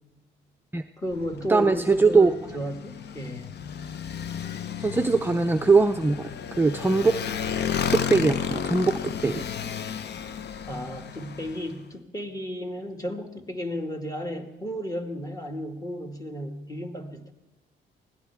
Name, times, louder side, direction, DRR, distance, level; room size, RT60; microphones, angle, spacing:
voice 1, 1.0-3.5 10.7-17.3, equal, 15° left, 3 dB, 2.2 m, -33 dB
Motorcycle, 1.1-11.8, left 8 dB, 60° left, 0.8 m, -33 dB
voice 2, 1.5-2.3 4.8-6.3 6.6-7.2 7.9-9.4, right 4 dB, 10° right, 7 dB, 0.6 m, -21 dB
24.0 x 17.0 x 3.6 m, 1.1 s
cardioid pair, 90°, 20 cm